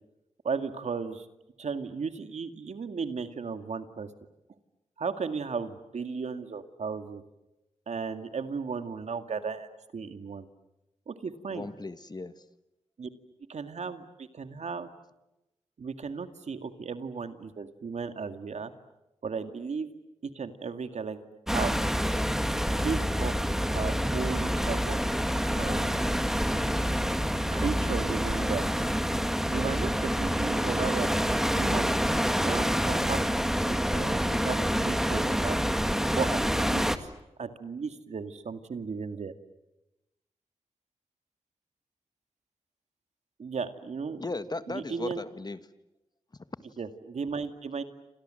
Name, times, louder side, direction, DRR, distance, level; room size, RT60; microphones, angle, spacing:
voice 1, 0.4-1.3 1.6-4.1 5.0-7.2 7.9-10.5 11.1-11.7 13.0-13.1 13.5-14.9 15.8-18.7 19.2-19.9 20.3-21.2 21.5-21.8 22.8-23.3 23.7-25.0 25.6-26.1 27.5-28.7 29.5-32.0 32.4-33.2 33.7-35.6 36.1-37.1 37.4-39.3 43.4-44.2 44.7-45.2 46.8-47.8, right 5 dB, 70° right, 9 dB, 2.1 m, -35 dB
voice 2, 11.5-12.4 44.2-45.6, left 2 dB, 35° left, 12 dB, 1.6 m, -36 dB
sound 1, 21.5-37.0, equal, 5° right, 1.9 m, -27 dB
29.0 x 27.0 x 7.7 m, 0.95 s
cardioid pair, 55°, 12 cm